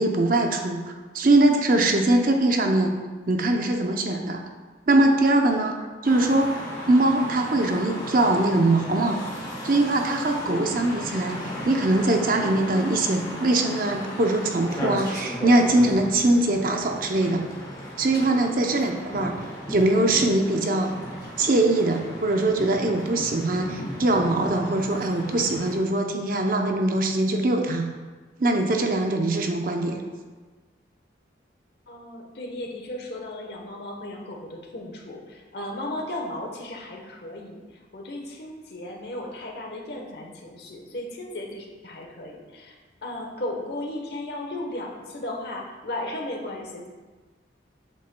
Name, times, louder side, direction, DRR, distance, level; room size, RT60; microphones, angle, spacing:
voice 1, 0.0-2.9 3.3-4.4 4.9-5.7 6.0-9.2 9.6-17.4 18.0-19.3 19.7-20.9 21.4-27.9 28.4-30.0, right 2 dB, 45° right, 3 dB, 0.6 m, -22 dB
sound 1, 6.0-25.8, equal, 20° left, 1.1 m, -36 dB
voice 2, 31.9-37.6 37.9-42.7 43.0-46.9, left 1 dB, 55° left, 1 dB, 1.0 m, -35 dB
8.0 x 6.8 x 2.2 m, 1.3 s
head